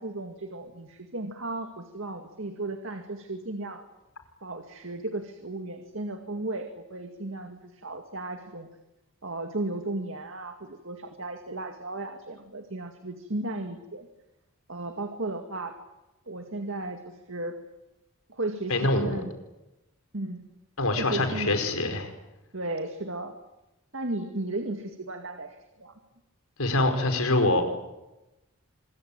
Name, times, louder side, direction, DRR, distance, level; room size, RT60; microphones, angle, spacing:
voice 1, 0.0-3.8 4.4-8.7 9.2-14.1 14.7-15.7 16.3-17.6 18.3-19.3 20.1-20.4 21.0-21.5 22.5-23.3 23.9-25.9, right 2 dB, 65° right, 5 dB, 2.2 m, -35 dB
voice 2, 18.7-19.2 20.8-22.1 26.6-27.6, left 2 dB, 90° left, 6 dB, 5.0 m, -24 dB
26.0 x 22.5 x 9.0 m, 0.99 s
head